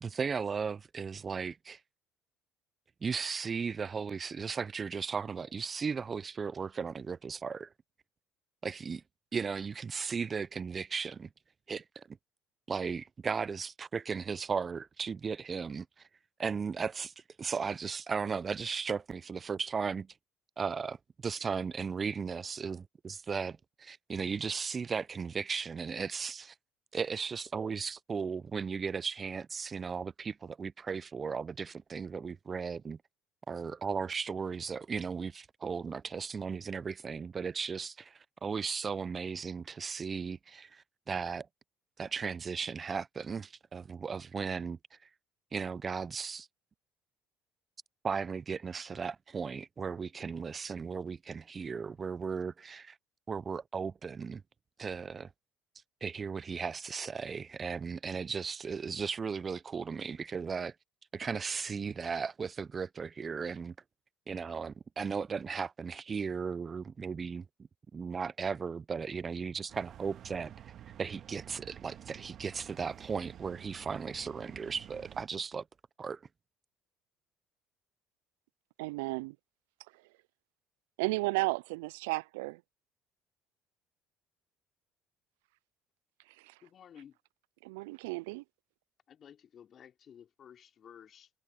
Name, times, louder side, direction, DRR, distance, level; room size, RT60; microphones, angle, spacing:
voice 1, 0.0-1.8 3.0-7.7 8.6-9.0 9.3-11.3 11.7-12.2 12.7-15.9 16.4-20.1 20.6-21.0 21.2-26.5 26.9-33.0 33.5-41.5 42.0-45.0 45.5-46.5 48.0-53.0 53.3-54.4 54.8-55.3 56.0-60.7 61.1-63.7 64.3-67.4 67.9-70.7 71.0-75.6 76.0-76.2, right 5 dB, 35° right, 0.7 m, -36 dB
sound 1, 69.7-75.2, right 11 dB, 55° right, 2.0 m, -50 dB
voice 2, 78.8-79.4 81.0-82.6 86.4-86.5 87.6-88.4, right 24 dB, 85° right, 0.3 m, -33 dB
voice 3, 86.6-87.2 89.1-91.3, left 8 dB, 50° left, 3.9 m, -54 dB
hypercardioid pair, 65°, 0 cm